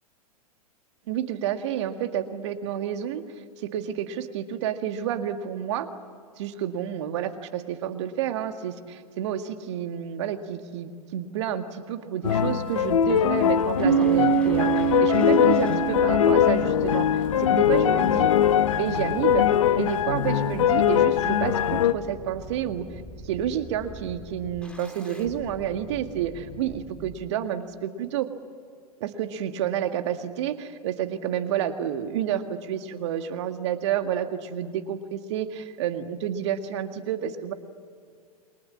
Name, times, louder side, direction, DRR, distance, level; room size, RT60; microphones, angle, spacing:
voice 1, 1.1-5.9 6.4-18.3 18.7-19.5 19.8-28.3 29.0-37.5, right 10 dB, 50° right, 8 dB, 1.9 m, -30 dB
sound 1, 12.2-21.9, left 9 dB, 60° left, 1.1 m, -22 dB
sound 2, 13.8-27.2, right 1 dB, 5° left, 2.8 m, -44 dB
Bass guitar, 13.8-17.7, right 9 dB, 65° right, 1.3 m, -26 dB
28.5 x 24.0 x 7.4 m, 2.2 s
figure-of-eight pair, 100°, 19 cm